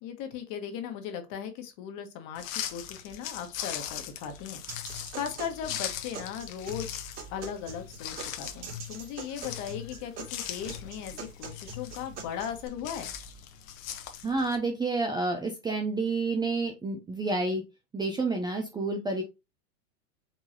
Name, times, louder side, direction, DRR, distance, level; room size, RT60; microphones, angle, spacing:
voice 1, 0.0-6.9 7.3-13.1, left 8 dB, 40° left, 1.4 m, -38 dB
sound 1, 2.3-14.6, left 9 dB, 60° left, 1.1 m, -40 dB
sound 2, 4.7-12.7, right 1 dB, 35° right, 2.2 m, -43 dB
voice 2, 14.2-17.6 17.9-19.2, right 3 dB, 10° right, 0.5 m, -29 dB
4.8 x 3.8 x 2.9 m
hypercardioid pair, 110°, 46 cm